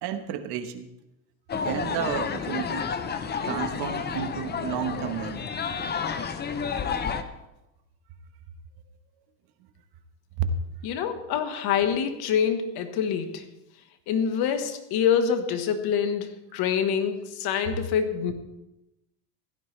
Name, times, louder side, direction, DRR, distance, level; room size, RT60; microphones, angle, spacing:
voice 1, 0.0-0.9 1.5-2.9 3.4-5.5 10.4-10.5, right 9 dB, 60° right, 9 dB, 1.3 m, -31 dB
sound 1, 1.5-7.2, left 6 dB, 25° left, 0.7 m, -30 dB
voice 2, 10.8-13.4 14.1-18.3, left 7 dB, 60° left, 8 dB, 1.5 m, -26 dB
16.0 x 13.0 x 3.3 m, 0.94 s
cardioid pair, 140°, 44 cm